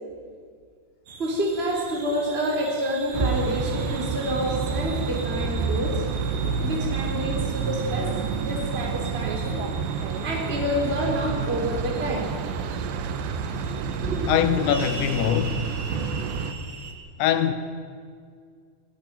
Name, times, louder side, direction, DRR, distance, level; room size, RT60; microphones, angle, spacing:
sound 1, 1.1-16.9, right 3 dB, 50° right, 3.5 m, -42 dB
voice 1, 1.2-6.1 6.6-9.6 10.2-12.3 13.5-13.6 14.0-14.3, equal, 15° right, 3.5 m, -28 dB
sound 2, 3.1-16.5, right 5 dB, 70° right, 3.1 m, -29 dB
voice 2, 14.3-15.6 17.2-17.5, left 10 dB, 75° left, 3.2 m, -22 dB
18.5 x 16.5 x 9.3 m
omnidirectional pair, 5.5 m